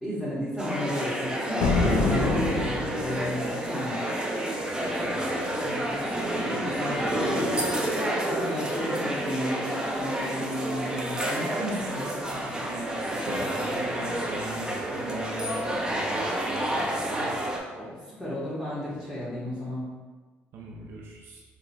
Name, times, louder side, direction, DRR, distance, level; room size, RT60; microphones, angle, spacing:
voice 1, 0.0-4.0 6.3-7.4 7.9-11.7 17.7-19.8, equal, 5° left, -11 dB, 1.1 m, -33 dB
sound 1, 0.6-17.6, right 1 dB, 15° right, 0.6 m, -29 dB
sound 2, 1.6-3.3, left 3 dB, 85° left, 0.4 m, -25 dB
voice 2, 4.8-7.5 11.5-17.4 20.5-21.4, right 2 dB, 65° right, -1 dB, 0.5 m, -40 dB
3.7 x 2.4 x 2.7 m, 1.4 s
supercardioid pair, 70°, 4 cm